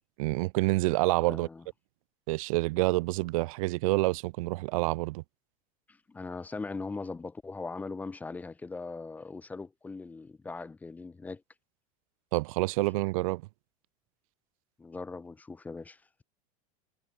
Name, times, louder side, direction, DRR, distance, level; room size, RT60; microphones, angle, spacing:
voice 1, 0.2-1.5 2.3-5.2 12.3-13.4, right 22 dB, 75° right, 0.7 m, -27 dB
voice 2, 1.3-1.6 6.1-11.4 14.8-16.2, left 3 dB, 10° left, 0.8 m, -40 dB
supercardioid pair, 165°, 18 cm